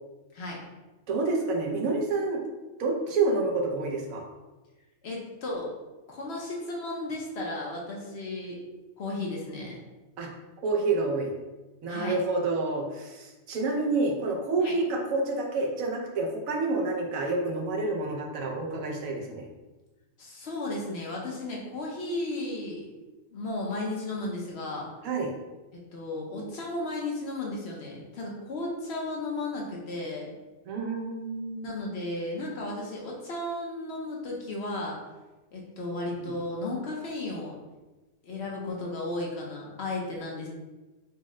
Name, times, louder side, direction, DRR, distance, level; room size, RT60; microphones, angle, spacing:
voice 1, 1.1-2.4 2.8-4.2 10.2-10.3 10.6-11.3 11.8-19.5 25.0-25.3 30.7-31.7 36.2-36.3, right 3 dB, 85° right, 1 dB, 1.1 m, -28 dB
voice 2, 5.0-5.7 6.1-8.6 9.0-9.8 11.9-12.2 14.6-14.7 20.2-22.9 23.3-24.9 25.9-30.3 31.6-35.0 35.5-37.5 38.2-40.5, left 2 dB, 55° left, -2 dB, 0.9 m, -34 dB
4.1 x 2.1 x 3.6 m, 1.1 s
omnidirectional pair, 1.4 m